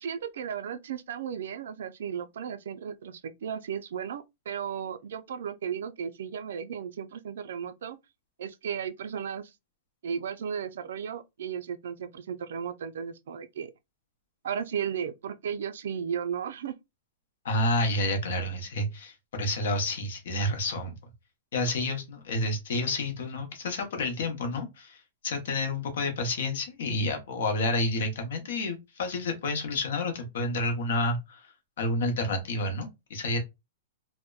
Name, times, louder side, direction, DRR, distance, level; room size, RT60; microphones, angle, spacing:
voice 1, 0.0-8.0 8.4-9.5 10.0-13.7 14.4-16.7, right 8 dB, 65° right, 0.3 m, -35 dB
voice 2, 17.4-20.9 21.5-25.0 25.2-33.4, left 2 dB, 60° left, 0.8 m, -29 dB
2.7 x 2.1 x 2.3 m
supercardioid pair, 175°, 0 cm